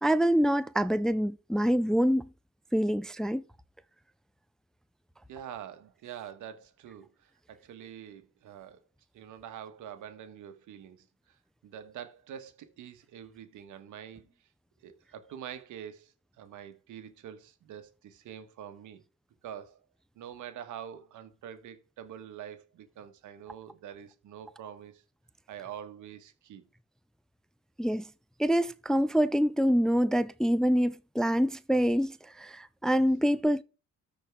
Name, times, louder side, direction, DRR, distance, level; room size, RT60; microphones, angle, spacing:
voice 1, 0.0-2.3 2.7-3.4 27.8-28.1 28.4-33.6, equal, ahead, 0.4 m, -26 dB
voice 2, 5.3-8.8 9.1-11.0 11.6-14.3 14.8-19.0 19.4-19.8 20.1-25.0 25.5-26.7, right 9 dB, 80° right, 1.4 m, -45 dB
13.5 x 4.7 x 3.6 m
cardioid pair, 90°, 30 cm